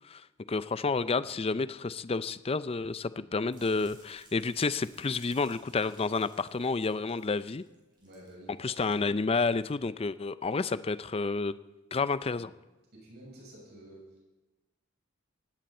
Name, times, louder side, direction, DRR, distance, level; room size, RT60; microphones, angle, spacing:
voice 1, 0.5-7.6 8.6-11.5 11.9-12.5, left 4 dB, 25° left, 15 dB, 0.5 m, -30 dB
sound 1, 3.5-8.3 8.6-8.9 9.4-9.5, right 2 dB, 20° right, 6.8 m, -58 dB
voice 2, 8.0-9.0 12.9-14.0, right 1 dB, 50° right, -3 dB, 7.3 m, -51 dB
18.0 x 17.0 x 4.4 m, 1.2 s
head